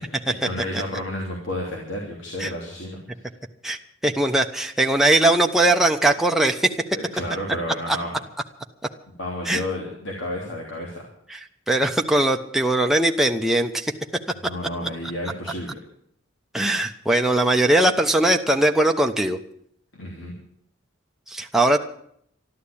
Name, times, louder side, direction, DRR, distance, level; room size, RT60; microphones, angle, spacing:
voice 1, 0.0-3.3 6.9-8.3 9.2-11.0 14.5-15.8 19.9-20.3, left 1 dB, 70° left, -1 dB, 3.1 m, -31 dB
voice 2, 3.6-6.7 9.5-9.6 11.3-13.9 16.5-19.4 21.3-21.8, right 1 dB, ahead, 3 dB, 0.9 m, -20 dB
13.0 x 11.5 x 8.6 m, 0.68 s
head